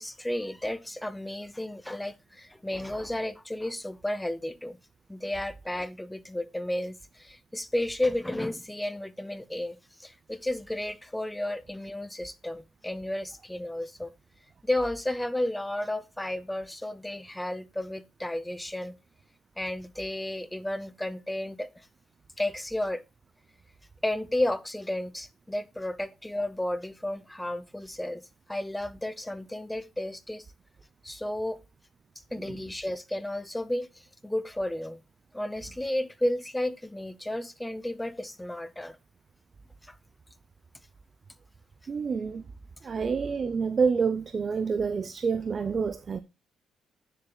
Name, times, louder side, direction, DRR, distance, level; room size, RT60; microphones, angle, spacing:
voice 1, 0.0-4.8 5.1-14.1 14.6-18.9 19.6-21.9 22.4-23.0 24.0-28.2 28.5-30.5 31.0-31.6 32.3-35.0 35.3-39.0 39.9-40.0, left 1 dB, 5° left, 0.6 m, -32 dB
voice 2, 41.9-42.4 42.8-46.2, right 5 dB, 40° right, 0.4 m, -28 dB
10.0 x 6.8 x 2.3 m
cardioid pair, 90°, 0 cm